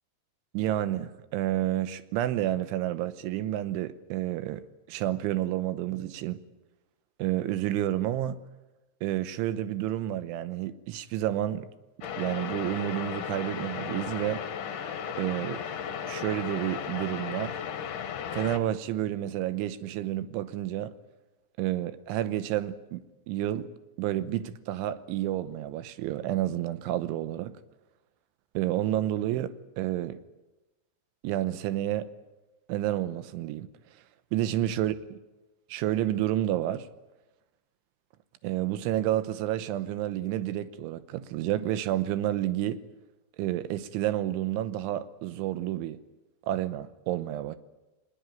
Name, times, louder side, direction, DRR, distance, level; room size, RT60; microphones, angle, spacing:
voice 1, 0.5-4.6 4.9-6.4 7.2-8.4 9.0-11.7 12.0-14.4 15.2-15.6 16.1-17.6 18.3-20.9 21.6-23.7 24.0-27.6 28.5-30.2 31.2-32.1 32.7-33.7 34.3-34.9 35.7-36.9 38.4-42.8 43.4-46.0 46.5-47.6, right 13 dB, 80° right, 3.4 m, -30 dB
sound 1, 12.0-18.6, left 8 dB, 60° left, 2.4 m, -35 dB
23.0 x 20.0 x 9.1 m
omnidirectional pair, 5.5 m